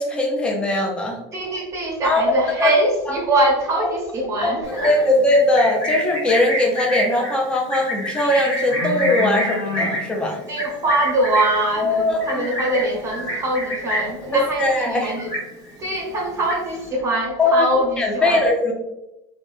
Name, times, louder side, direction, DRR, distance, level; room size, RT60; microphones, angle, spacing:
voice 1, 0.0-1.2 2.0-2.2 2.6-2.7 3.1-3.2 4.4-4.5 4.8-10.4 11.8-12.5 14.6-15.1 17.4-17.7 18.0-18.7, left 2 dB, 5° left, 0 dB, 0.4 m, -20 dB
voice 2, 1.3-5.1 10.5-15.3 15.8-18.4, right 1 dB, 20° right, -2 dB, 0.7 m, -23 dB
Livestock farm animals working animals, 4.6-14.3 14.6-14.9 15.2-15.9 16.2-16.9, equal, 25° left, 1.4 m, -27 dB
3.2 x 2.1 x 2.5 m, 0.92 s
cardioid pair, 160°, 15 cm